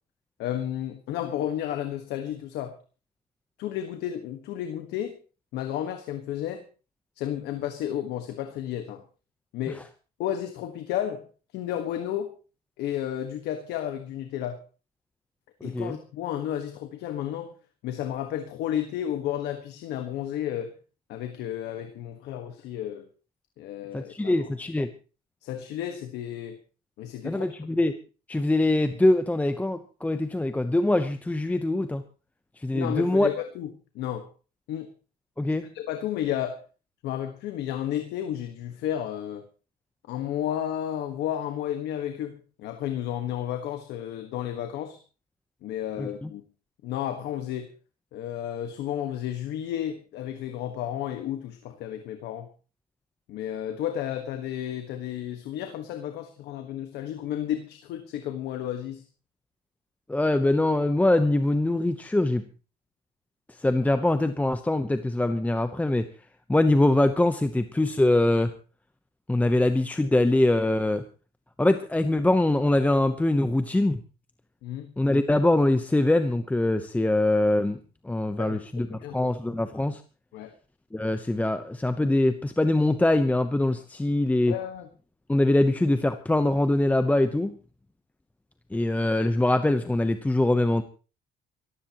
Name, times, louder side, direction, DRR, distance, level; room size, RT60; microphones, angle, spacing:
voice 1, 0.4-2.8 3.6-5.2 5.5-6.7 7.2-9.0 9.5-9.8 10.2-11.3 11.5-12.3 12.8-14.6 15.6-17.5 17.8-20.8 21.1-23.1 23.6-24.5 25.4-26.6 27.0-27.5 32.7-34.3 34.7-34.9 35.7-36.6 37.0-39.4 40.1-45.0 45.6-46.4 46.8-47.7 48.1-52.5 53.3-59.0 74.6-74.9 78.4-79.2 80.3-80.5 84.5-84.9, left 11 dB, 85° left, 7 dB, 1.5 m, -32 dB
voice 2, 15.6-16.0 23.9-24.9 27.2-28.0 28.3-32.0 32.6-33.3 35.4-35.7 46.0-46.3 60.1-62.4 63.5-66.1 66.5-68.5 69.3-71.0 71.6-74.0 75.0-77.8 78.0-80.0 80.9-84.6 85.3-87.5 88.7-90.8, left 1 dB, 10° left, 9 dB, 0.9 m, -23 dB
24.0 x 14.5 x 3.0 m, 0.34 s
cardioid pair, 110°, 17 cm